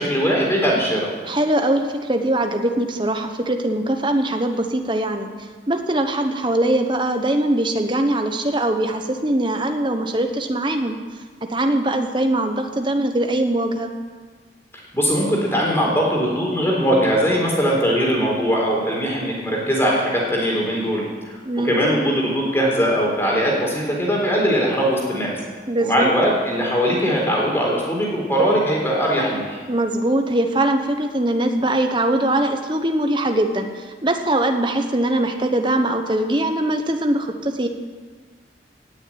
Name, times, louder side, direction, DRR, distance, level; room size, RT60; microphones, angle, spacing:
voice 1, 0.0-1.1 14.9-21.3 21.6-25.3 25.8-29.6, equal, 15° left, -2 dB, 3.9 m, -20 dB
voice 2, 1.3-5.3 5.7-11.0 11.5-13.9 21.4-21.8 25.7-26.1 29.7-37.7, right 1 dB, 25° right, 5 dB, 1.2 m, -21 dB
18.0 x 7.3 x 8.9 m, 1.5 s
head